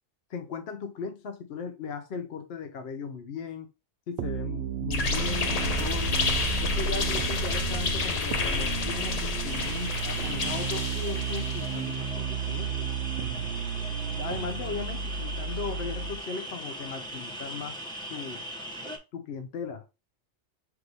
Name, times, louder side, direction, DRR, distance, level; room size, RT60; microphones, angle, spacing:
voice 1, 0.3-3.7 4.1-6.2 6.6-12.9 14.2-17.8 18.1-18.5 19.1-19.9, left 5 dB, 65° left, 0.9 m, -37 dB
sound 1, 4.2-16.2, right 9 dB, 70° right, 0.8 m, -33 dB
sound 2, 4.9-12.0, left 4 dB, 45° left, 0.5 m, -29 dB
sound 3, 9.5-19.0, right 1 dB, 5° left, 0.8 m, -39 dB
4.7 x 2.6 x 4.0 m
omnidirectional pair, 1.2 m